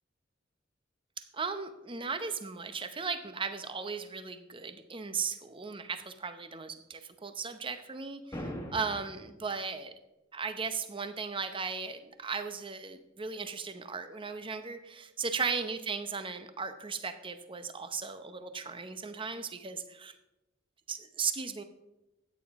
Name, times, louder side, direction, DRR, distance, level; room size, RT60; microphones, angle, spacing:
voice 1, 1.2-9.9 10.3-20.1 20.9-21.6, right 5 dB, 25° right, 9 dB, 0.8 m, -37 dB
sound 1, 8.3-9.3, equal, 15° left, 1.5 m, -40 dB
13.5 x 9.3 x 3.6 m, 0.95 s
head